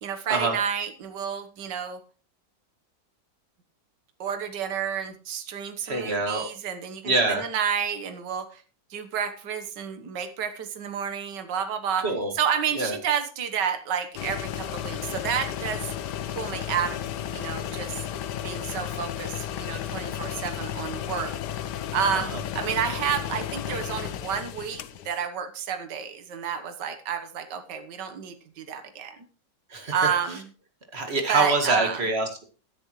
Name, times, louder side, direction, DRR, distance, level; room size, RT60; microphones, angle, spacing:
voice 1, 0.0-2.0 4.2-8.6 8.9-12.1 12.3-15.9 16.3-17.0 17.3-18.0 18.4-21.3 21.9-29.2 29.9-30.5 31.3-32.0, right 7 dB, 70° right, 8 dB, 1.8 m, -30 dB
voice 2, 5.8-6.5 7.0-7.4 12.0-12.3 12.7-13.0 22.1-22.4 29.7-29.9 30.9-32.4, right 3 dB, 35° right, 4 dB, 2.4 m, -25 dB
sound 1, 14.1-25.3, left 10 dB, 70° left, 1.3 m, -33 dB
16.5 x 10.5 x 3.1 m, 0.38 s
omnidirectional pair, 1.9 m